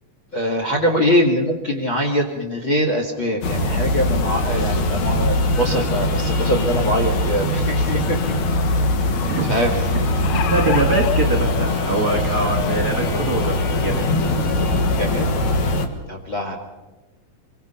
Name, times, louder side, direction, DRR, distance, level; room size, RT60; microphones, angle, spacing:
voice 1, 0.3-8.2 9.5-9.8 15.0-15.3 16.1-16.6, equal, 40° left, 3 dB, 2.7 m, -22 dB
sound 1, 3.4-15.9, left 1 dB, 60° left, 2.9 m, -21 dB
sound 2, 10.2-11.1 12.1-12.2 12.6-12.7, left 9 dB, 80° left, 2.7 m, -28 dB
voice 2, 10.3-14.0, right 2 dB, 35° right, 3 dB, 2.0 m, -23 dB
26.5 x 23.5 x 5.7 m, 1.1 s
omnidirectional pair, 3.9 m